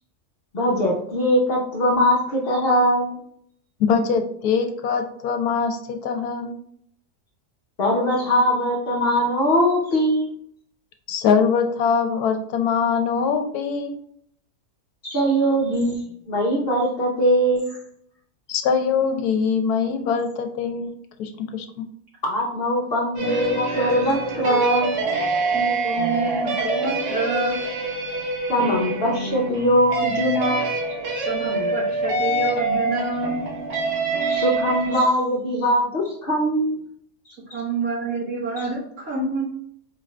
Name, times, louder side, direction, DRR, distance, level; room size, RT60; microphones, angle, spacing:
voice 1, 0.5-3.2 7.8-10.3 15.0-17.8 22.2-25.0 28.5-30.8 34.2-36.8, equal, 45° left, -3 dB, 0.9 m, -21 dB
voice 2, 3.8-6.5 11.1-13.9 18.5-20.9 21.2-21.7, left 6 dB, 80° left, 6 dB, 1.1 m, -22 dB
sound 1, 23.2-35.1, right 2 dB, 85° right, 1.5 m, -25 dB
voice 3, 25.5-27.6 31.2-33.4 37.5-39.4, right 3 dB, 65° right, -6 dB, 2.1 m, -27 dB
4.5 x 2.5 x 3.2 m, 0.66 s
omnidirectional pair, 1.6 m